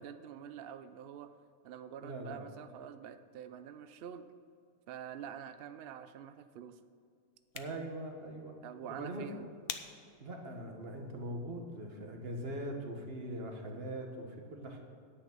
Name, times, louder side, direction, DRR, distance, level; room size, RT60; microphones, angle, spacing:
voice 1, 0.0-1.3 1.6-4.3 4.9-6.8 8.6-9.5, right 9 dB, 80° right, 11 dB, 0.5 m, -46 dB
voice 2, 2.0-2.4 7.5-8.6 8.9-9.4 10.2-14.8, right 1 dB, 45° right, 2 dB, 1.5 m, -41 dB
sound 1, 7.3-12.4, left 9 dB, 85° left, 1.2 m, -50 dB
9.9 x 8.7 x 6.0 m, 2.3 s
omnidirectional pair, 1.5 m